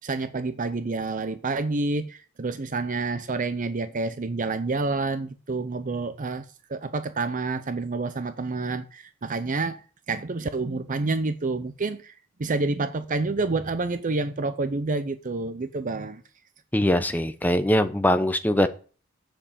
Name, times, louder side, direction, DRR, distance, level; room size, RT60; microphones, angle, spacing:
voice 1, 0.0-9.8 10.1-12.1 12.4-16.2, right 3 dB, 40° right, 0.6 m, -28 dB
voice 2, 16.7-18.7, left 1 dB, 10° left, 0.7 m, -22 dB
7.8 x 6.8 x 7.2 m
head